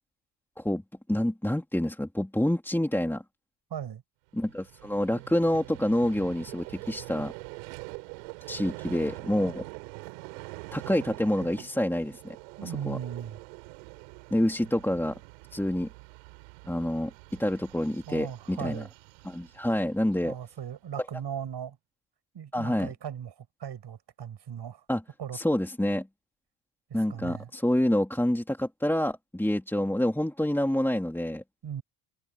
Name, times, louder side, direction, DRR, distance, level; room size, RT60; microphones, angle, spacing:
voice 1, 1.1-3.2 4.3-7.3 8.5-9.6 10.7-12.3 12.6-13.0 14.3-15.2 15.5-15.9 16.7-18.8 19.2-20.3 22.5-22.9 24.9-25.0 25.3-26.1 26.9-31.4, left 1 dB, 5° left, 2.9 m, -27 dB
voice 2, 3.7-4.0 12.6-13.4 18.1-18.9 20.2-21.8 22.3-24.8 25.2-25.4 27.1-27.5 31.6-31.8, right 9 dB, 55° right, 6.8 m, -37 dB
Vehicle, 4.3-20.7, right 30 dB, 90° right, 4.5 m, -45 dB
supercardioid pair, 65°, 50 cm